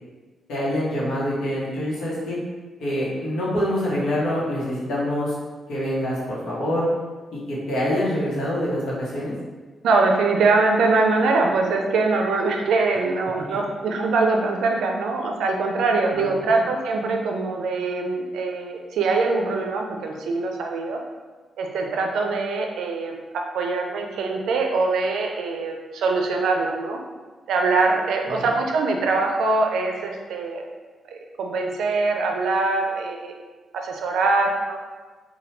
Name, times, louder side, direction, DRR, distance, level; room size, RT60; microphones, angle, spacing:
voice 1, 0.5-2.4 2.8-5.3 5.7-6.9 7.3-9.3 16.1-16.5 28.3-28.4, equal, 90° left, -6 dB, 0.9 m, -25 dB
voice 2, 9.8-21.0 21.6-23.2 23.5-27.0 27.5-30.6 31.1-33.4 33.7-34.8, right 3 dB, 90° right, 2 dB, 0.4 m, -23 dB
2.9 x 2.2 x 3.2 m, 1.4 s
cardioid pair, 120°, 0 cm